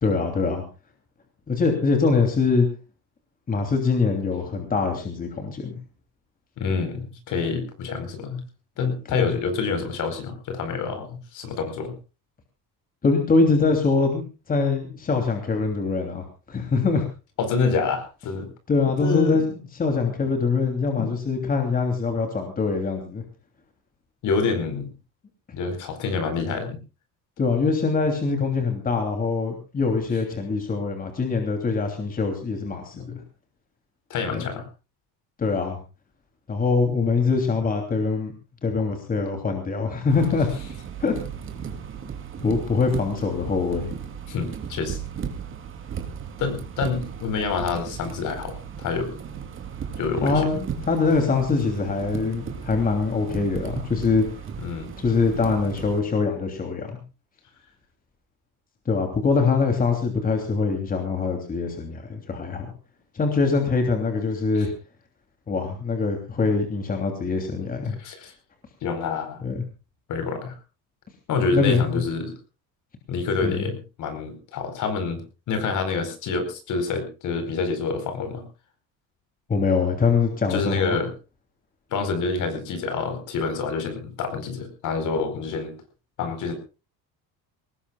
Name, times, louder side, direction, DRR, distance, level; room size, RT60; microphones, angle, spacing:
voice 1, 0.0-0.6 1.5-2.7 3.5-5.8 9.1-9.3 13.0-17.1 18.7-23.2 27.4-32.9 34.3-34.4 35.4-35.8 36.5-38.3 38.6-40.5 41.0-41.1 42.4-43.9 50.2-54.2 55.0-57.0 58.9-62.7 63.1-64.7 65.5-68.0 69.4-69.6 71.5-72.0 73.4-73.7 79.5-81.0, left 4 dB, 25° left, 4 dB, 3.1 m, -23 dB
voice 2, 6.6-8.4 8.8-11.9 17.4-18.5 19.0-19.4 21.0-21.1 24.2-24.9 25.5-26.8 33.1-33.2 34.1-34.6 44.3-45.0 46.4-49.2 50.0-50.5 54.6-54.9 64.5-64.7 68.0-68.3 68.8-69.4 70.1-70.5 71.3-72.3 73.1-78.4 80.5-81.1 81.9-85.7 86.2-86.5, left 4 dB, 55° left, 8 dB, 4.7 m, -27 dB
sound 1, 40.1-56.0, right 7 dB, 35° right, 2.7 m, -36 dB
22.5 x 19.5 x 2.4 m, 0.32 s
cardioid pair, 155°, 37 cm